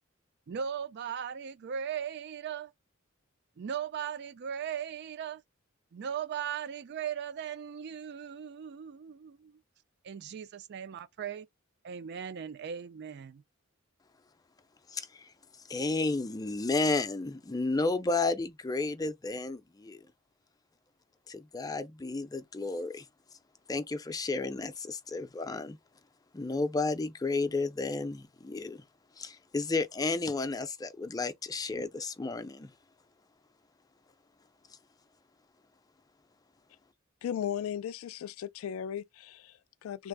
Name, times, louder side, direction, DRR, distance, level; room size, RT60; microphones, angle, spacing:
voice 1, 0.5-2.7 3.6-5.4 5.9-9.6 10.0-11.5 11.8-13.4, right 8 dB, 55° right, 0.4 m, -38 dB
voice 2, 14.9-15.3 15.7-20.0 21.3-23.1 23.7-25.8 26.3-28.8 29.2-32.7, left 3 dB, 20° left, 0.4 m, -32 dB
voice 3, 37.2-40.1, left 9 dB, 85° left, 0.3 m, -36 dB
3.4 x 2.0 x 3.4 m
head